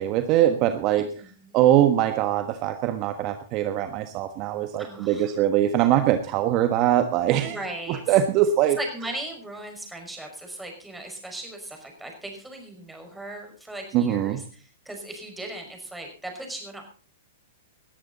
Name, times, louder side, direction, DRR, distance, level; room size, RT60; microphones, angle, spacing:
voice 1, 0.0-1.1 1.5-7.6 7.9-8.8 13.9-14.4, right 11 dB, 40° right, 9 dB, 1.3 m, -22 dB
voice 2, 1.2-1.6 4.8-5.4 7.4-8.1 8.8-16.8, right 1 dB, 5° right, 2 dB, 5.8 m, -38 dB
19.5 x 13.5 x 4.1 m, 0.38 s
hypercardioid pair, 115°, 0 cm